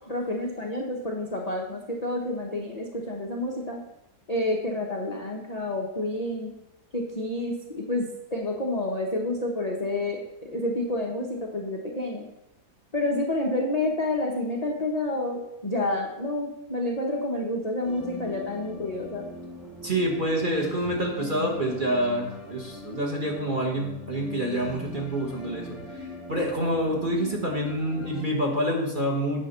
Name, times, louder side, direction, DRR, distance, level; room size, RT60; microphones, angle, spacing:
voice 1, 0.1-3.8 4.3-6.5 6.9-12.3 12.9-19.3, left 1 dB, 35° left, -1 dB, 0.6 m, -29 dB
sound 1, 17.8-28.2, left 1 dB, ahead, 1.1 m, -41 dB
voice 2, 19.8-29.4, right 1 dB, 30° right, -1 dB, 1.2 m, -27 dB
9.2 x 3.7 x 6.6 m, 0.90 s
omnidirectional pair, 2.1 m